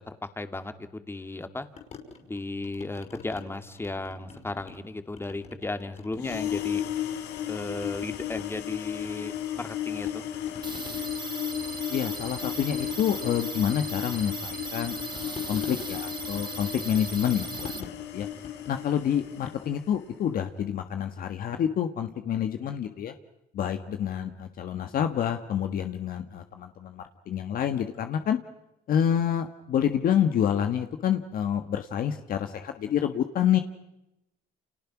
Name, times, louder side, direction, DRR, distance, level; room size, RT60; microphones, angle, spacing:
voice 1, 0.0-1.7 2.3-6.8 7.5-10.2, left 2 dB, 15° left, 9 dB, 2.3 m, -35 dB
sound 1, 1.8-3.4 3.8-4.9 5.2-7.0 7.3-9.7 10.0-19.8, left 6 dB, 40° left, 5.7 m, -46 dB
sound 2, 6.1-20.1, left 11 dB, 90° left, 3.4 m, -35 dB
sound 3, 10.6-17.8, right 4 dB, 25° right, 2.0 m, -38 dB
voice 2, 11.9-18.3 18.7-23.1 23.5-28.4 28.9-33.6, left 9 dB, 60° left, 7 dB, 1.6 m, -28 dB
30.0 x 28.5 x 6.1 m, 0.89 s
cardioid pair, 110°, 17 cm